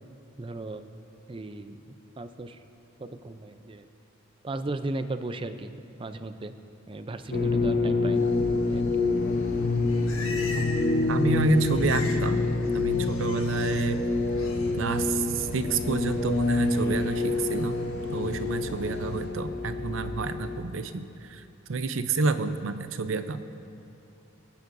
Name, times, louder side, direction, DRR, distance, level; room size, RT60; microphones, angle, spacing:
voice 1, 0.4-0.8 1.3-2.6 3.0-3.9 4.4-5.7 6.0-6.5 6.9-8.3 8.6-8.9, right 2 dB, 25° right, 9 dB, 0.4 m, -36 dB
sound 1, 7.3-20.6, left 2 dB, 45° left, 0.8 m, -27 dB
sound 2, 8.1-19.3, equal, 10° left, 3.4 m, -48 dB
Livestock farm animals working animals, 9.5-11.0 11.2-12.3 12.5-13.9 14.3-14.7, left 3 dB, 90° left, 1.3 m, -40 dB
voice 2, 11.1-12.5 12.7-14.0 14.8-17.8 18.1-21.4 21.7-23.4, right 3 dB, 70° right, 10 dB, 0.6 m, -29 dB
25.5 x 9.4 x 2.6 m, 2.7 s
head